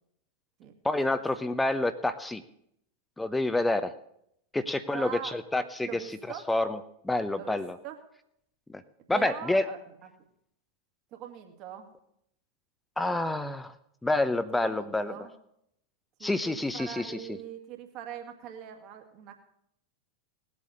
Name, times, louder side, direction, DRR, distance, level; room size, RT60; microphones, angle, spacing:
voice 1, 0.8-2.4 3.2-3.9 4.5-6.0 6.5-6.8 7.0-7.8 8.7-8.8 9.1-9.7 13.0-13.7 14.0-15.1 16.2-17.2, left 2 dB, 5° left, 12 dB, 0.8 m, -28 dB
voice 2, 4.9-5.3 5.8-6.5 7.3-7.6 7.8-8.0 9.1-10.1 11.1-11.9 14.6-15.3 16.2-19.4, right 10 dB, 40° right, 4 dB, 2.2 m, -42 dB
18.5 x 8.3 x 6.6 m, 0.75 s
figure-of-eight pair, 90°, 0 cm